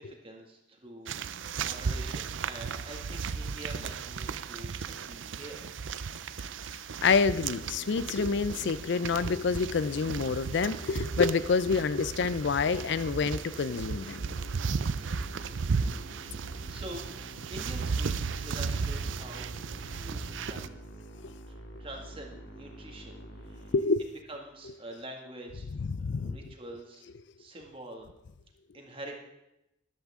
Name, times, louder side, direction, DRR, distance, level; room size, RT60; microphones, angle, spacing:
voice 1, 0.0-5.6 16.7-17.0 17.5-19.5 19.9-20.7 21.5-23.7 24.3-25.7 26.0-27.0 27.4-28.1 28.7-29.2, right 1 dB, 30° right, 1 dB, 2.0 m, -45 dB
sound 1, 1.1-20.7, right 5 dB, 75° right, 0.5 m, -35 dB
voice 2, 7.0-14.2 23.7-24.0 25.8-26.4, left 5 dB, 65° left, 16 dB, 0.4 m, -27 dB
Musical instrument, 7.3-24.4, equal, 85° left, 2.0 m, -47 dB
13.5 x 11.5 x 3.7 m, 0.89 s
head